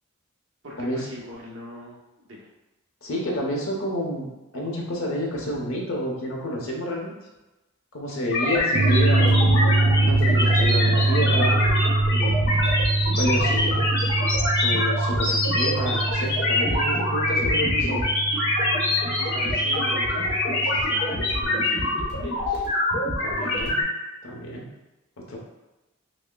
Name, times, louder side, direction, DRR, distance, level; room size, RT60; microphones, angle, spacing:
voice 1, 0.6-2.5 5.5-5.6 19.2-20.3 20.6-22.7, equal, 60° right, -3 dB, 0.8 m, -41 dB
voice 2, 3.0-7.1 7.9-9.4 10.0-11.6 12.1-12.4 13.1-13.8 14.6-18.0 23.2-23.8 24.2-24.7 25.3-25.4, equal, 75° left, -2 dB, 0.9 m, -29 dB
sound 1, 8.3-23.8, left 1 dB, 55° left, 1.0 m, -25 dB
sound 2, 8.7-21.7, right 2 dB, 25° right, 0.4 m, -24 dB
6.2 x 2.1 x 2.2 m, 1.1 s
head